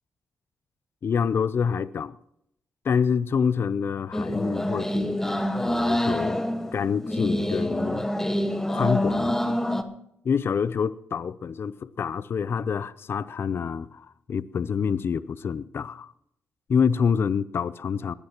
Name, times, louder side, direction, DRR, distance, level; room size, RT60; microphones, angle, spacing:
voice 1, 1.0-2.2 2.8-6.4 6.7-8.1 8.7-9.6 10.2-16.1 16.7-18.1, left 6 dB, 55° left, 0.5 m, -27 dB
sound 1, 4.1-9.8, left 1 dB, 10° left, 1.5 m, -26 dB
20.5 x 15.5 x 3.0 m
supercardioid pair, 55°, 5 cm